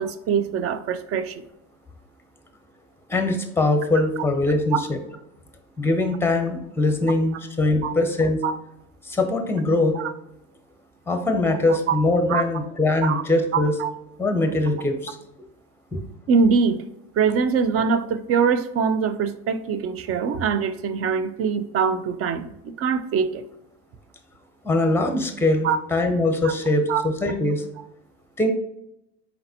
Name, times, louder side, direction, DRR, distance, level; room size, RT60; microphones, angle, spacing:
voice 1, 0.0-1.4 4.7-4.8 7.8-7.9 8.4-8.6 9.9-10.1 11.9-12.0 12.3-12.4 13.0-13.2 13.5-13.9 16.3-16.8 17.2-23.4 25.6-25.8 26.4-26.5 26.9-27.0, right 6 dB, 40° right, 12 dB, 0.5 m, -23 dB
voice 2, 3.1-5.0 5.8-8.4 9.0-10.0 11.1-13.7 14.2-15.2 15.9-16.0 24.6-27.6 28.4-28.5, left 2 dB, 5° left, 6 dB, 0.8 m, -22 dB
4.4 x 3.9 x 2.7 m, 0.82 s
hypercardioid pair, 85°, 36 cm